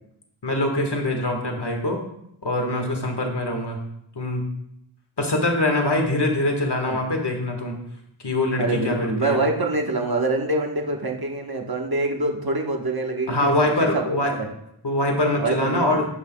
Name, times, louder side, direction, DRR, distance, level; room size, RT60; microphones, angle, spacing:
voice 1, 0.4-2.0 2.4-3.8 4.2-4.4 5.2-7.7 8.2-9.4 13.3-14.3 14.8-16.1, left 1 dB, 55° left, 2 dB, 1.7 m, -23 dB
voice 2, 8.6-13.6 13.9-14.5 15.4-15.8, right 2 dB, 45° right, 2 dB, 1.4 m, -25 dB
16.5 x 5.8 x 2.3 m, 0.77 s
wide cardioid pair, 45°, 49 cm